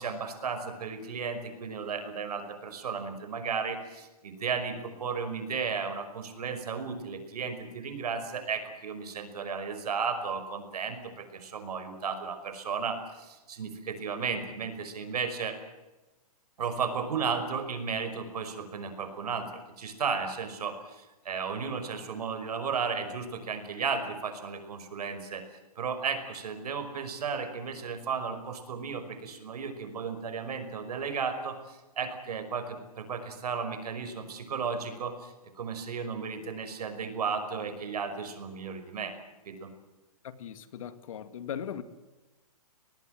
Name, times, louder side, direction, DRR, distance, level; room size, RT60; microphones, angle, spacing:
voice 1, 0.0-15.6 16.6-25.4 25.8-39.1 39.4-39.7, right 5 dB, 75° right, 5.5 m, -34 dB
voice 2, 40.2-41.8, left 9 dB, 60° left, 2.1 m, -38 dB
25.5 x 19.5 x 7.7 m
hypercardioid pair, 165°, 20 cm